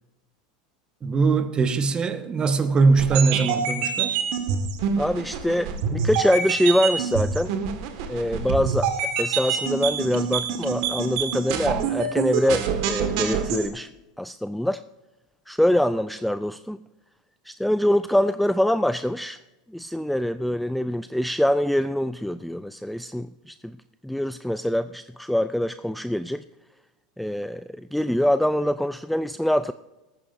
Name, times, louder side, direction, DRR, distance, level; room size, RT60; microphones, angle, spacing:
voice 1, 1.0-4.2, right 4 dB, 25° right, 1.3 m, -21 dB
sound 1, 3.0-13.7, right 6 dB, 65° right, 1.7 m, -26 dB
voice 2, 5.0-7.5 8.1-13.9 14.2-14.8 15.5-16.8 17.4-19.4 19.7-23.8 24.0-26.4 27.2-29.7, equal, ahead, 0.3 m, -24 dB
18.0 x 14.0 x 2.6 m
hypercardioid pair, 105°, 4 cm